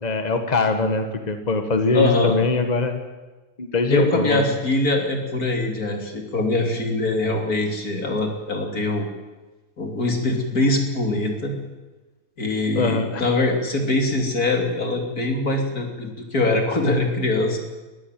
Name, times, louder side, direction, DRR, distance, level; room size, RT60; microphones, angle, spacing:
voice 1, 0.0-3.0 3.6-4.4 12.7-13.3, left 3 dB, 30° left, 7 dB, 1.7 m, -22 dB
voice 2, 1.9-2.4 3.9-9.1 9.8-11.6 12.4-17.6, left 2 dB, 80° left, 3 dB, 3.6 m, -23 dB
21.5 x 14.5 x 9.2 m, 1.2 s
omnidirectional pair, 1.6 m